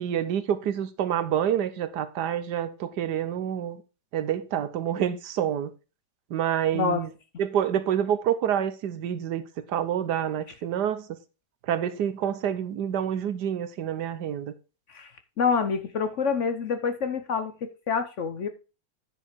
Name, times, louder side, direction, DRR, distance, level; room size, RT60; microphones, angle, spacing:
voice 1, 0.0-3.8 4.1-5.7 6.3-7.1 7.4-11.2 11.7-14.5, right 9 dB, 75° right, 1.4 m, -27 dB
voice 2, 15.4-18.5, left 5 dB, 55° left, 0.9 m, -27 dB
9.7 x 5.1 x 5.0 m
omnidirectional pair, 1.8 m